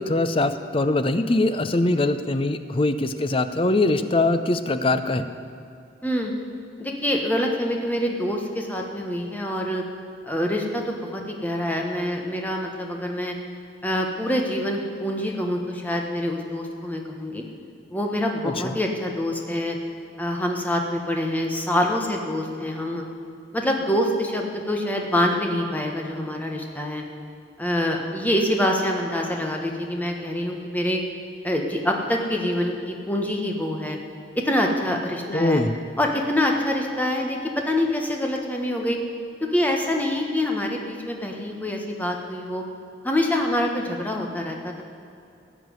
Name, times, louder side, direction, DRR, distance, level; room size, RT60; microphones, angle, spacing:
voice 1, 0.0-5.3 18.4-18.7 35.3-35.7, left 2 dB, 30° left, 10 dB, 0.6 m, -22 dB
voice 2, 6.0-6.3 6.8-9.8 10.3-13.3 13.8-17.4 17.9-19.8 20.2-23.0 23.5-27.0 27.6-31.0 31.4-34.0 34.3-35.6 36.0-39.0 39.5-42.6 43.0-44.8, left 1 dB, 10° left, 1 dB, 1.4 m, -25 dB
15.5 x 6.0 x 9.5 m, 2.6 s
head